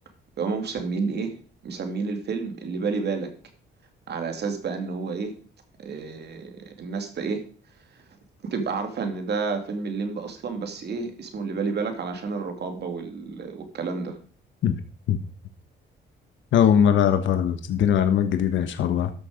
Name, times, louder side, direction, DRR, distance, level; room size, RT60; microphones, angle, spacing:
voice 1, 0.4-1.3 1.6-3.3 4.1-5.3 5.8-7.4 7.9-8.0 8.4-14.2, right 4 dB, 55° right, 6 dB, 2.6 m, -30 dB
voice 2, 16.5-19.1, left 9 dB, 75° left, 9 dB, 1.2 m, -20 dB
12.5 x 6.5 x 5.1 m, 0.40 s
cardioid pair, 90°, 20 cm